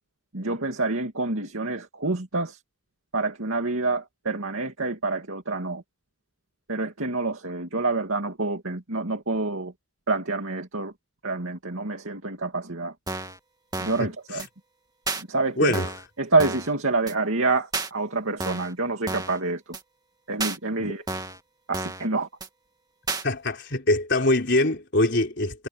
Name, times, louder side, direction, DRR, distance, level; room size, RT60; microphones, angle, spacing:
voice 1, 0.3-2.6 3.1-5.8 6.7-9.7 10.1-10.9 11.2-12.9 13.8-14.5 15.3-15.7 16.2-19.6 20.3-21.0 21.7-22.3, right 3 dB, 85° right, 2.5 m, -27 dB
sound 1, 13.1-13.4 13.7-14.1 14.4-14.5 15.1-15.2 15.7-16.1 16.4-16.7 17.1-17.2 17.7-17.9 18.4-18.7 19.1-19.4 19.7-19.8 20.4-20.6 21.1-21.4 21.7-22.1 22.4-22.5 23.1-23.2, right 3 dB, 20° right, 2.0 m, -31 dB
voice 2, 14.0-14.4 15.6-15.9 20.8-21.0 23.2-25.7, left 2 dB, 55° left, 4.3 m, -24 dB
head